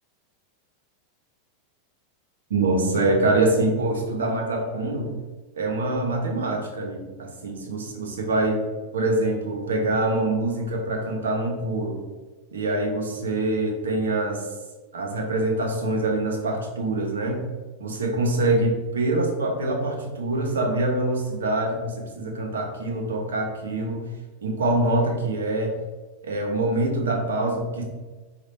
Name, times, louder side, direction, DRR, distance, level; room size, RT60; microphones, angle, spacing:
voice 1, 2.5-5.2 5.5-8.6 8.9-12.0 12.5-14.5 14.9-17.5 17.8-24.1 24.4-25.7 26.2-27.8, right 2 dB, 85° right, 2 dB, 0.9 m, -25 dB
4.9 x 2.5 x 4.2 m, 1.3 s
hypercardioid pair, 100°, 0 cm